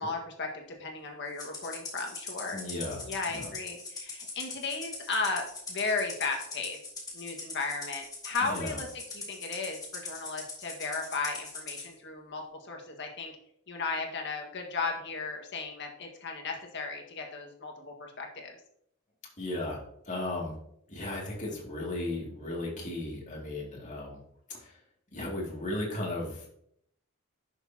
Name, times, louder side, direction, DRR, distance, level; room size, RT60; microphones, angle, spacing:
voice 1, 0.0-2.6 3.1-6.8 7.1-13.3 13.7-18.6, left 4 dB, 55° left, 2 dB, 1.7 m, -35 dB
Rattle (instrument), 1.4-11.9, left 3 dB, 15° left, 2.1 m, -41 dB
voice 2, 2.5-3.0 3.3-3.5 8.4-8.8 19.4-19.8 20.1-20.5 20.9-24.2 24.5-24.8 25.1-26.5, left 1 dB, 35° left, -3 dB, 2.5 m, -35 dB
11.0 x 6.6 x 2.9 m, 0.72 s
head